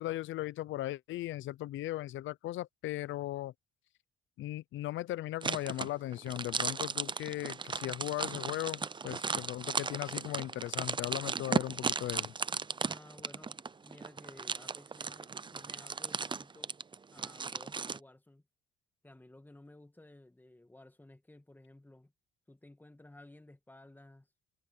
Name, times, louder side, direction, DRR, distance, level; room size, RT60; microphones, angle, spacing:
voice 1, 0.0-3.5 4.4-12.3, left 15 dB, 75° left, 0.6 m, -37 dB
sound 1, 5.4-18.0, right 5 dB, 25° right, 0.6 m, -36 dB
voice 2, 12.8-13.6 13.8-16.8 17.1-18.4 19.0-22.1 22.5-24.3, left 1 dB, 10° left, 2.1 m, -56 dB
cardioid pair, 90°, 20 cm